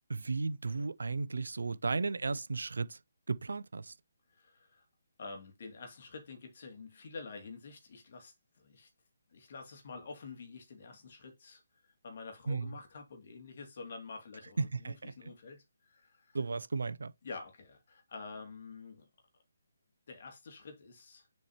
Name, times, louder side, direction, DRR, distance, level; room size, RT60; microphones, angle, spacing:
voice 1, 0.1-3.0 3.3-3.9 12.5-12.7 14.6-15.1 16.3-17.1, right 4 dB, 75° right, 0.5 m, -34 dB
voice 2, 4.3-4.9 5.2-8.9 9.3-11.6 12.0-16.4 17.2-19.1 20.1-21.3, left 4 dB, 55° left, 2.3 m, -48 dB
6.9 x 4.5 x 3.0 m
figure-of-eight pair, 150°, 0 cm